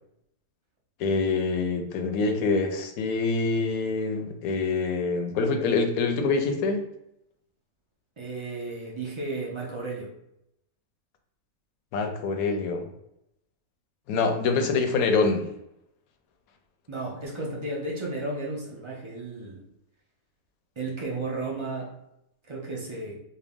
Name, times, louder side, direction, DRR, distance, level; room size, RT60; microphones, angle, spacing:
voice 1, 1.0-6.8 11.9-12.9 14.1-15.5, left 4 dB, 75° left, 5 dB, 1.0 m, -25 dB
voice 2, 8.2-10.1 16.9-19.6 20.8-21.9 22.5-23.2, right 2 dB, 50° right, -3 dB, 0.3 m, -33 dB
4.4 x 2.1 x 3.5 m, 0.82 s
omnidirectional pair, 1.6 m